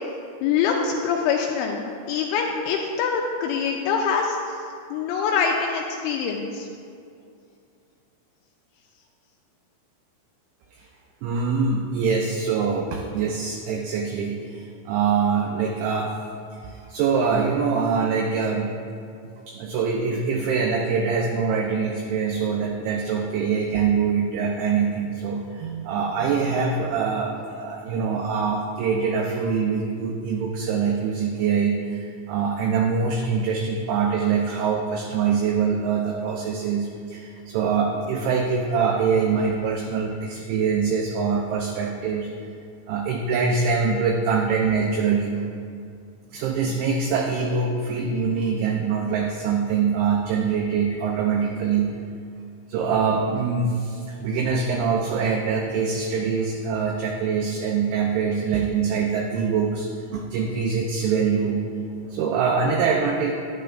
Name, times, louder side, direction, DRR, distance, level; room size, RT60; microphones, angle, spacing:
voice 1, 0.4-4.4 4.9-6.7, left 6 dB, 85° left, 1 dB, 2.8 m, -24 dB
voice 2, 11.2-16.1 16.5-18.8 19.5-42.3 42.9-45.4 46.3-51.9 52.7-61.6 62.1-63.3, right 5 dB, 80° right, 0 dB, 2.7 m, -24 dB
12.0 x 10.0 x 2.5 m, 2.4 s
omnidirectional pair, 5.9 m